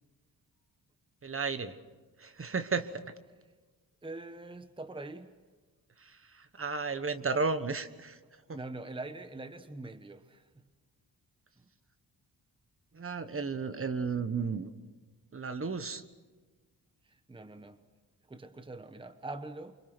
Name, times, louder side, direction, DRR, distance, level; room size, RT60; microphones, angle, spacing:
voice 1, 1.2-1.7 2.2-2.9 6.6-8.2 12.9-14.7 15.3-16.0, right 4 dB, 35° right, 11 dB, 1.3 m, -33 dB
voice 2, 4.0-5.3 8.5-10.4 17.1-17.8 18.3-19.7, right 2 dB, 15° right, 10 dB, 1.1 m, -43 dB
28.5 x 25.0 x 6.2 m, 1.3 s
wide cardioid pair, 115°, 38 cm